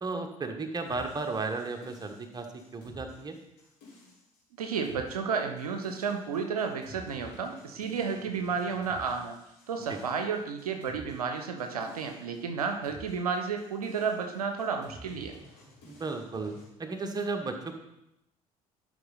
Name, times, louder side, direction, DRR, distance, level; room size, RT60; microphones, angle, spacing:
voice 1, 0.0-3.4 9.9-10.0 15.8-16.5 16.8-17.7, right 3 dB, 20° right, 4 dB, 1.2 m, -34 dB
sound 1, 0.8-16.7, equal, 50° left, 2.9 m, -52 dB
voice 2, 4.6-9.4 9.7-15.4, right 5 dB, 75° right, 5 dB, 0.7 m, -32 dB
11.5 x 4.8 x 4.0 m, 0.85 s
figure-of-eight pair, 55°, 19 cm